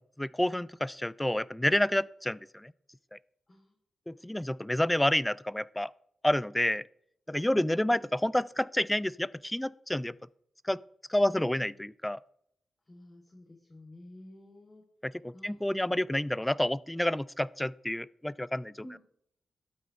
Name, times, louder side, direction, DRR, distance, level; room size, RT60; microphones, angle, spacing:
voice 1, 0.0-2.7 3.1-3.2 4.1-5.9 6.2-6.9 7.3-10.2 10.6-10.8 11.1-12.2 15.0-18.7, left 1 dB, 10° left, 21 dB, 0.3 m, -29 dB
voice 2, 7.5-8.0 12.9-14.8 15.3-15.7 18.8-19.0, left 1 dB, 30° left, -1 dB, 3.1 m, -51 dB
12.5 x 8.3 x 3.2 m, 0.70 s
cardioid pair, 55°, 0 cm